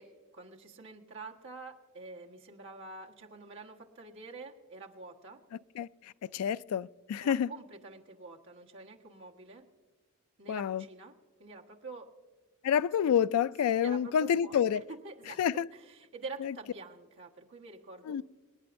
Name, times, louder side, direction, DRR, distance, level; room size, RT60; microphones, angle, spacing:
voice 1, 0.0-5.4 7.2-9.6 10.4-11.1 11.4-12.1 13.8-15.4 15.7-18.2, right 3 dB, 60° right, 1.4 m, -47 dB
voice 2, 5.8-7.5 10.5-10.8 12.6-14.8 15.4-15.7 16.4-16.5 18.1-18.2, left 8 dB, 80° left, 0.3 m, -28 dB
25.5 x 9.9 x 2.6 m
head